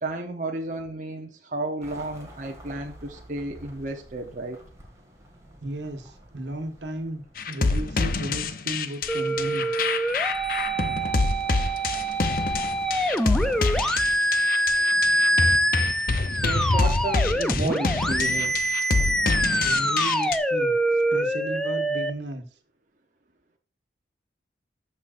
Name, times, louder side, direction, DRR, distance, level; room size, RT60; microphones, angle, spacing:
voice 1, 0.0-4.6 16.3-18.6, right 2 dB, 45° right, 0.9 m, -32 dB
sound 1, 1.8-8.3 9.4-13.9, equal, 15° right, 2.2 m, -48 dB
voice 2, 5.6-9.7 19.6-22.4, right 1 dB, 80° right, 1.5 m, -35 dB
sound 2, 7.4-20.4, left 3 dB, 50° left, 0.7 m, -26 dB
sound 3, 9.1-22.1, right 1 dB, 5° left, 0.5 m, -25 dB
14.0 x 5.7 x 2.6 m
head